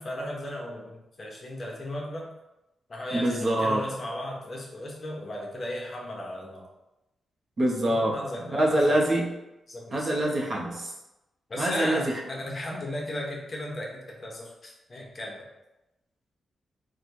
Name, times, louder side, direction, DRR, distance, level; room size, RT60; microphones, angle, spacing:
voice 1, 0.0-2.3 2.9-6.6 7.8-8.8 9.7-10.2 11.5-15.4, left 1 dB, 35° left, -2 dB, 0.9 m, -36 dB
voice 2, 3.1-3.8 7.6-8.2 8.5-9.3 9.9-10.9 11.6-12.1, right 1 dB, 40° right, -2 dB, 0.8 m, -25 dB
4.1 x 2.2 x 4.6 m, 0.96 s
wide cardioid pair, 120°, 0 cm